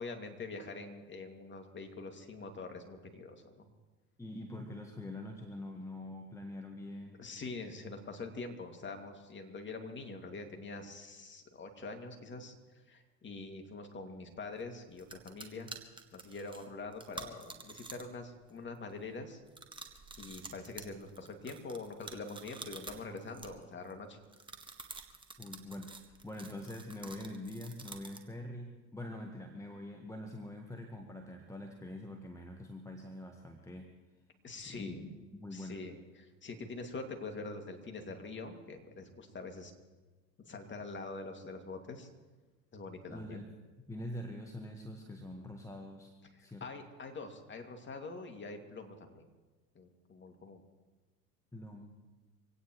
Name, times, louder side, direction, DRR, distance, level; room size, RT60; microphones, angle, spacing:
voice 1, 0.0-3.7 7.2-15.7 16.1-19.4 20.2-24.2 34.4-35.0 35.5-39.7 40.4-42.1 42.7-43.4 46.4-49.2 49.7-50.6, left 3 dB, 20° left, 4 dB, 2.4 m, -44 dB
voice 2, 4.2-7.2 25.4-33.9 34.7-35.8 43.1-43.5 43.8-46.1 46.4-46.6 51.5-52.0, left 1 dB, 5° left, 3 dB, 1.4 m, -44 dB
sound 1, 14.6-14.7 15.0-18.2 18.5-18.9 19.5-23.9 24.3-28.3, right 3 dB, 10° right, 1.7 m, -48 dB
24.5 x 17.5 x 3.2 m, 1.2 s
figure-of-eight pair, 80°, 50 cm